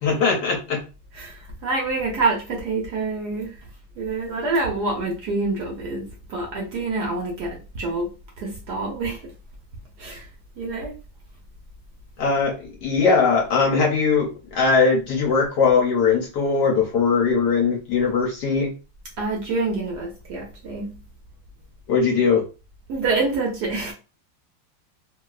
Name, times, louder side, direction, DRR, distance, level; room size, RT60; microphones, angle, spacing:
voice 1, 0.0-0.8 12.2-18.7 21.9-22.4, left 5 dB, 65° left, 1.1 m, -20 dB
voice 2, 1.1-3.6 4.0-8.1 8.4-9.3 10.0-10.3 10.6-10.9 19.2-21.0 22.9-23.9, right 3 dB, 65° right, 1.1 m, -26 dB
3.2 x 2.7 x 2.3 m
omnidirectional pair, 2.3 m